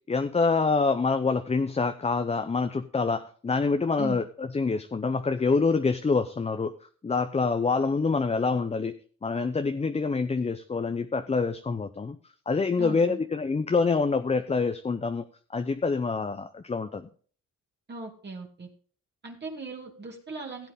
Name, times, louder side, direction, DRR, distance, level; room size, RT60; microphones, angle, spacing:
voice 1, 0.1-6.7 7.0-8.9 9.2-12.2 12.5-15.2 15.5-17.1, left 4 dB, 20° left, 8 dB, 0.8 m, -26 dB
voice 2, 12.8-13.2 17.9-18.7 19.2-20.7, right 3 dB, 35° right, 0 dB, 2.4 m, -38 dB
16.5 x 8.0 x 3.7 m, 0.43 s
cardioid pair, 90°, 30 cm